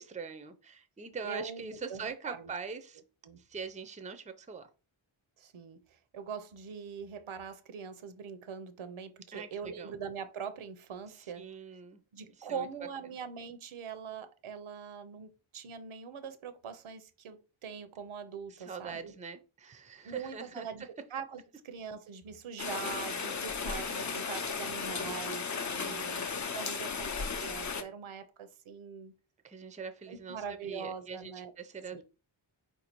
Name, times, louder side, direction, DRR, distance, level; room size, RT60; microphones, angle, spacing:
voice 1, 0.0-3.0 3.5-4.7 9.3-10.0 11.1-12.0 12.4-12.7 13.0-13.1 18.5-20.9 25.5-26.2 29.4-32.0, right 5 dB, 15° right, 0.4 m, -43 dB
voice 2, 1.2-2.5 3.2-3.4 5.4-5.8 6.1-11.4 12.1-19.1 20.0-20.8 21.1-29.1 30.1-31.5 31.9-32.0, right 6 dB, 80° right, 0.7 m, -42 dB
Rain, 22.6-27.8, left 5 dB, 35° left, 0.6 m, -35 dB
4.5 x 2.7 x 4.4 m
wide cardioid pair, 115°, 49 cm